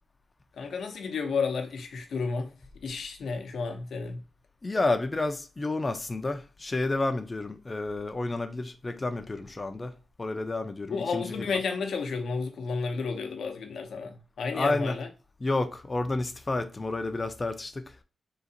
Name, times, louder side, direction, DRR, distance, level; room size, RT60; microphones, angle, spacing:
voice 1, 0.6-2.5 2.8-4.2 10.9-15.1, left 4 dB, 80° left, 0.7 m, -32 dB
voice 2, 4.6-9.9 10.2-11.6 14.5-15.0 15.4-17.9, left 2 dB, 30° left, 0.5 m, -30 dB
3.8 x 2.4 x 2.7 m
cardioid pair, 65°, 0 cm